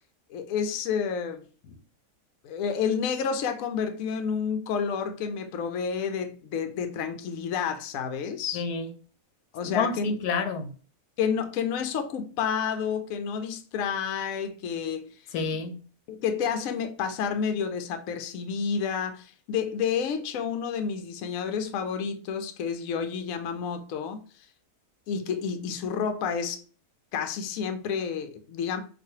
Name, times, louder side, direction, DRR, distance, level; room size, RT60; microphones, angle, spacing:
voice 1, 0.3-1.5 2.4-8.6 9.5-10.2 11.2-15.1 16.1-24.2 25.1-26.6 27.1-28.8, left 6 dB, 65° left, 1.0 m, -30 dB
voice 2, 8.5-8.9 9.6-10.7 15.3-15.8, left 5 dB, 90° left, 1.3 m, -29 dB
5.9 x 2.6 x 2.7 m
omnidirectional pair, 1.6 m